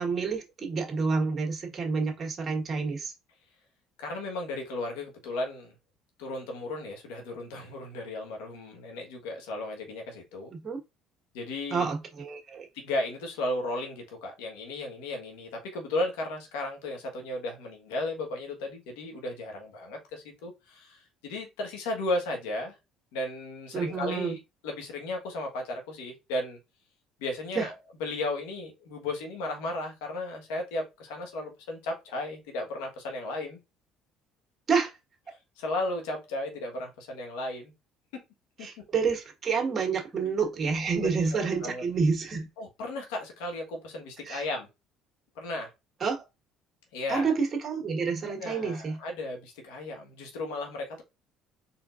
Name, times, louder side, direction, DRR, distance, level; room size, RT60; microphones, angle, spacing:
voice 1, 0.0-3.1 10.5-10.8 11.7-12.7 23.7-24.3 27.5-27.7 34.7-34.9 38.6-42.5 44.2-44.4 46.0-46.2 47.1-49.0, right 5 dB, 40° right, 1.6 m, -28 dB
voice 2, 4.0-5.7 6.2-10.5 11.3-11.9 12.7-22.8 23.1-24.4 24.6-26.6 27.2-27.7 28.0-33.6 35.6-37.7 38.1-38.2 38.6-38.8 41.0-41.2 41.6-41.8 42.6-44.7 45.3-45.7 46.9-47.3 48.2-51.0, left 2 dB, 85° left, 1.4 m, -35 dB
4.3 x 3.6 x 2.5 m
supercardioid pair, 85°, 0 cm